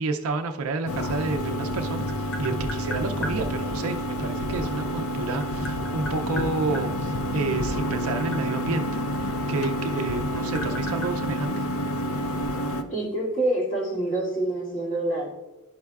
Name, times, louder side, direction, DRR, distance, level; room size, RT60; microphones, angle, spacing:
voice 1, 0.0-8.9 9.5-11.7, right 3 dB, 70° right, 6 dB, 0.4 m, -30 dB
sound 1, 0.9-12.8, equal, 75° left, 0.5 m, -29 dB
Tap, 1.9-3.4 4.7-6.9 7.6-9.8 10.1-12.1, equal, 55° left, 0.9 m, -38 dB
voice 2, 12.9-15.3, right 1 dB, 35° left, -5 dB, 2.2 m, -26 dB
11.0 x 5.4 x 2.3 m, 1.1 s
head